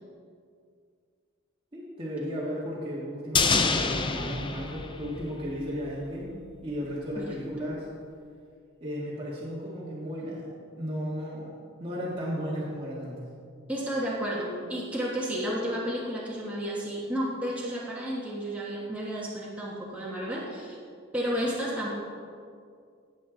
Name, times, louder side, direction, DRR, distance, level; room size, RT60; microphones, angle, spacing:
voice 1, 1.7-7.9 8.8-10.5 10.8-11.5 11.8-13.3, equal, 25° right, -7 dB, 1.6 m, -34 dB
sound 1, 3.4-5.7 6.0-6.1, left 4 dB, 25° left, 0.5 m, -27 dB
voice 2, 13.7-20.8 21.1-21.9, equal, 5° right, -6 dB, 1.3 m, -32 dB
17.0 x 6.7 x 3.8 m, 2.2 s
head